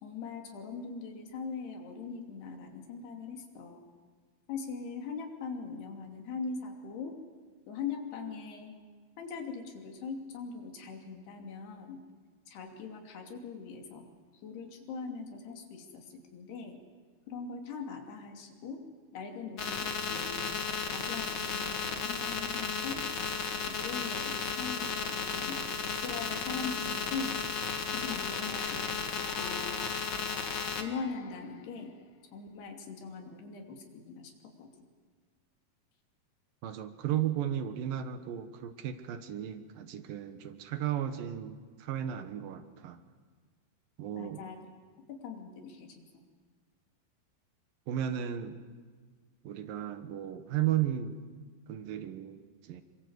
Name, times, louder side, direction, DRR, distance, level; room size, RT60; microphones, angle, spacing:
voice 1, 0.0-3.9 4.5-7.2 7.7-8.7 9.2-12.0 12.5-14.1 14.4-16.8 17.3-18.8 19.1-20.5 20.9-23.0 23.7-27.4 27.9-29.8 30.8-32.0 32.3-34.3 34.6-34.9 44.1-44.6 45.2-46.0, left 5 dB, 85° left, 3 dB, 4.9 m, -41 dB
sound 1, 19.6-30.8, left 5 dB, 45° left, 1.9 m, -34 dB
sound 2, 28.1-32.3, left 10 dB, 70° left, 2.5 m, -49 dB
voice 2, 36.6-43.0 44.0-44.5 47.9-48.6 49.4-51.2 51.7-52.4 52.7-52.8, right 11 dB, 70° right, 9 dB, 2.9 m, -34 dB
27.5 x 24.5 x 8.1 m, 1.5 s
omnidirectional pair, 4.5 m